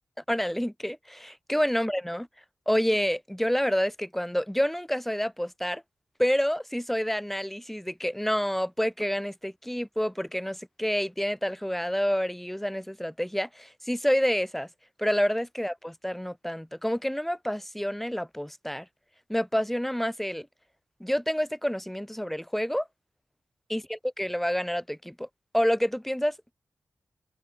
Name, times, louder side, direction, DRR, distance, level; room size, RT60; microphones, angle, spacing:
voice 1, 0.3-2.3 2.7-5.8 6.2-14.7 15.0-18.9 19.3-20.5 21.0-22.9 23.7-25.3 25.5-26.5, equal, 5° left, 1.6 m, -28 dB
open air
wide cardioid pair, 130°, 5 cm